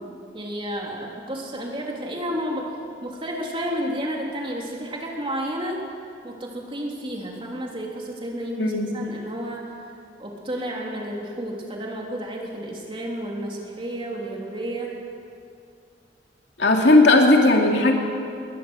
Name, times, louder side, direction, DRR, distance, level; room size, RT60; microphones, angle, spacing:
voice 1, 0.3-2.7 3.0-5.8 6.2-9.6 10.2-14.9, equal, 30° right, -1 dB, 3.2 m, -31 dB
voice 2, 16.6-17.9, left 2 dB, 70° left, 1 dB, 2.7 m, -16 dB
21.0 x 19.5 x 6.4 m, 2.4 s
head